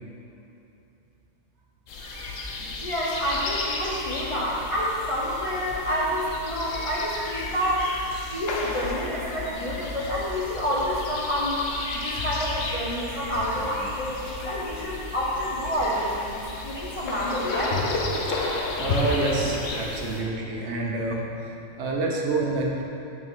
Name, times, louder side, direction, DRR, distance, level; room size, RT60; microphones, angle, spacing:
sound 1, 1.9-20.2, left 2 dB, 85° left, 1.1 m, -32 dB
voice 1, 2.0-2.4 18.8-21.2 21.8-22.8, right 2 dB, 65° right, -1 dB, 1.0 m, -27 dB
voice 2, 2.8-7.9 8.3-11.6 11.9-17.8, equal, 35° left, -6 dB, 0.7 m, -28 dB
6.1 x 6.1 x 3.6 m, 2.9 s
omnidirectional pair, 1.3 m